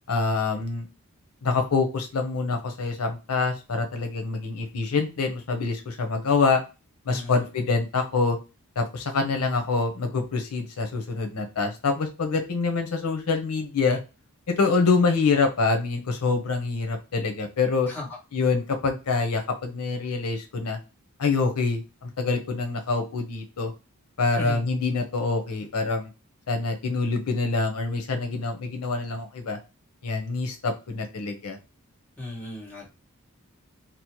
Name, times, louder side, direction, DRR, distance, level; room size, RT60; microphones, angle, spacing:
voice 1, 0.1-0.9 1.4-6.6 7.0-8.4 8.8-14.0 14.5-17.9 18.3-20.8 21.2-23.7 24.2-26.1 26.5-29.6 30.0-31.6, left 4 dB, 90° left, 5 dB, 0.7 m, -25 dB
voice 2, 7.1-7.4 17.9-18.1 24.4-24.6 32.2-32.9, left 2 dB, 10° left, -6 dB, 1.1 m, -35 dB
2.9 x 2.1 x 2.9 m, 0.29 s
head